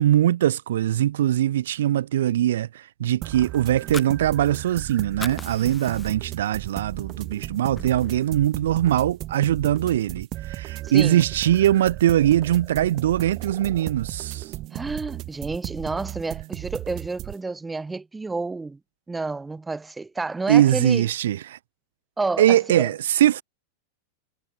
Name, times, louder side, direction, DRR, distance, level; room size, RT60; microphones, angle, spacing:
voice 1, 0.0-14.5 20.5-21.6 22.4-23.4, right 12 dB, 60° right, 0.4 m, -21 dB
sound 1, 3.2-17.4, right 16 dB, 35° right, 1.3 m, -35 dB
Fire, 3.7-4.8 5.1-6.4 6.8-7.0 7.4-8.4, left 5 dB, 15° left, 2.2 m, -39 dB
voice 2, 14.7-18.8 19.1-21.0 22.2-22.9, right 3 dB, 10° right, 1.5 m, -30 dB
figure-of-eight pair, 90°, 0 cm